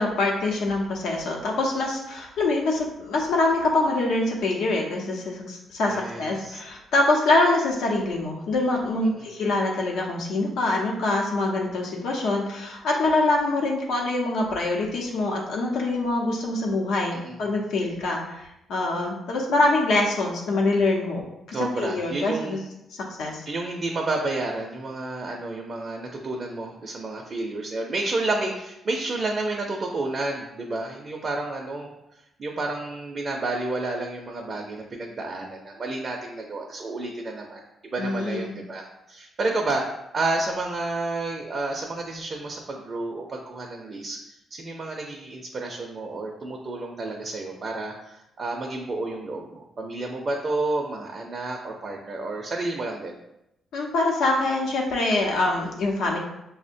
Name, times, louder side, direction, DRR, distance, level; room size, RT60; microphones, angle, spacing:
voice 1, 0.0-22.6 23.2-23.4 38.0-38.5 53.7-56.2, left 2 dB, 90° left, -1 dB, 0.8 m, -24 dB
voice 2, 5.9-6.6 9.1-9.3 17.1-17.4 21.5-22.6 23.5-31.9 32.4-39.8 40.1-44.2 44.5-53.2, right 2 dB, 40° right, 0 dB, 0.4 m, -30 dB
5.6 x 2.1 x 2.6 m, 0.86 s
cardioid pair, 120°, 0 cm